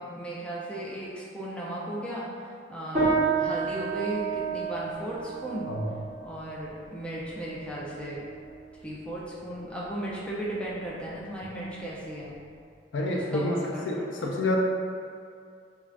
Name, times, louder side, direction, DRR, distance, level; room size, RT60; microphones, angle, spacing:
voice 1, 0.0-2.3 2.7-5.8 6.2-8.2 8.8-12.4 13.1-14.3, right 1 dB, 5° left, -6 dB, 0.4 m, -36 dB
sound 1, 2.9-12.6, right 4 dB, 40° right, 1.0 m, -32 dB
voice 2, 12.9-14.6, left 2 dB, 70° left, -1 dB, 0.4 m, -28 dB
2.4 x 2.3 x 3.2 m, 2.3 s
head